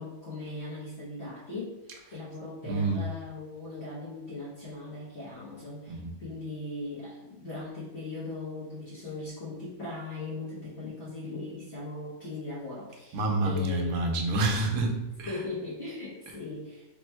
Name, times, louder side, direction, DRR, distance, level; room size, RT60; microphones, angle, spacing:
voice 1, 0.0-1.8 2.1-14.0 15.3-16.9, left 2 dB, 50° left, -8 dB, 1.1 m, -39 dB
voice 2, 2.6-3.0 5.9-6.1 13.1-15.4, right 2 dB, 70° right, 1 dB, 1.1 m, -28 dB
3.5 x 2.2 x 4.2 m, 0.98 s
omnidirectional pair, 1.5 m